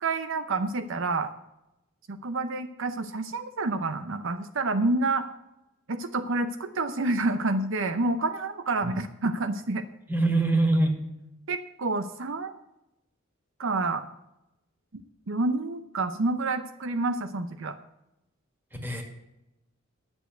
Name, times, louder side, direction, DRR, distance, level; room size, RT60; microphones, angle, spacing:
voice 1, 0.0-1.3 2.1-5.3 5.9-9.8 11.5-12.5 13.6-14.0 15.3-17.8, right 2 dB, 65° right, 10 dB, 0.7 m, -28 dB
voice 2, 10.1-11.0 18.8-19.0, right 2 dB, 10° right, 3 dB, 2.0 m, -23 dB
11.0 x 6.6 x 7.9 m, 0.90 s
head